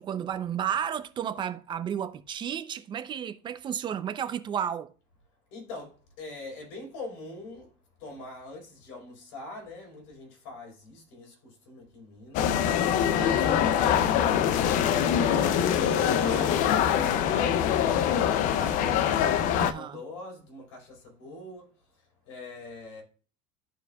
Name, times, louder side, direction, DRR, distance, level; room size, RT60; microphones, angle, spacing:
voice 1, 0.0-4.9 13.2-13.7 19.6-20.0, right 9 dB, 30° right, 0.6 m, -32 dB
voice 2, 5.5-7.7 8.0-12.6 13.3-18.8 19.4-21.7 22.2-23.0, left 2 dB, 85° left, 4.5 m, -43 dB
sound 1, 12.3-19.7, left 9 dB, 55° left, 0.6 m, -24 dB
14.0 x 4.8 x 2.4 m
cardioid pair, 145°, 16 cm